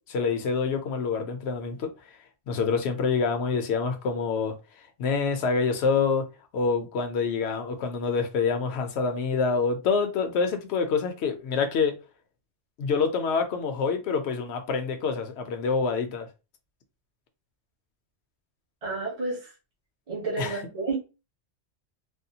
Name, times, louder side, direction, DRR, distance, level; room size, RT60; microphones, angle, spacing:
voice 1, 0.1-1.9 2.5-4.5 5.0-6.2 6.5-11.9 12.8-16.3 20.4-20.6, left 5 dB, 70° left, 0.9 m, -26 dB
voice 2, 18.8-19.5 20.1-21.0, right 3 dB, 35° right, 1.0 m, -31 dB
3.5 x 2.2 x 2.7 m
omnidirectional pair, 1.2 m